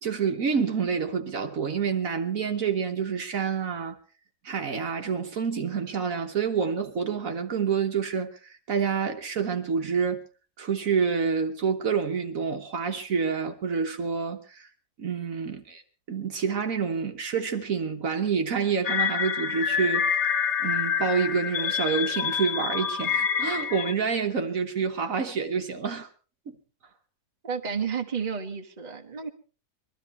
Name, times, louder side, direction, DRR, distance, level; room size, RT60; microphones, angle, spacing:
voice 1, 0.0-4.0 4.4-10.2 10.6-14.7 15.0-15.8 16.1-20.2 20.6-26.1 26.5-26.6, right 6 dB, 60° right, 1.5 m, -28 dB
sound 1, 18.8-23.9, left 7 dB, 50° left, 1.1 m, -27 dB
voice 2, 27.4-29.3, right 6 dB, 30° right, 1.3 m, -31 dB
22.0 x 13.0 x 4.2 m
omnidirectional pair, 1.7 m